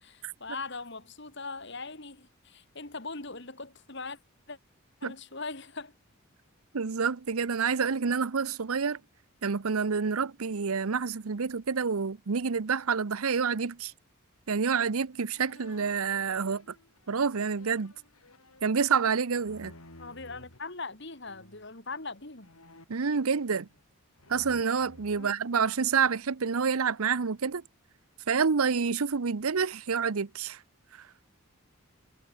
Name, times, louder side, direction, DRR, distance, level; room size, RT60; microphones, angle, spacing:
voice 1, 0.0-4.2 4.5-4.6 5.0-5.9 20.0-22.5 25.1-25.3, left 3 dB, 50° left, 2.7 m, -40 dB
voice 2, 6.7-9.0 9.4-13.9 14.5-16.7 17.1-17.9 18.6-19.7 22.9-23.7 24.3-27.6 28.3-30.6 31.0-31.1, right 5 dB, 80° right, 0.7 m, -28 dB
sound 1, 15.3-20.6 21.2-21.7 22.4-23.9 24.2-26.1, left 1 dB, 80° left, 6.4 m, -55 dB
head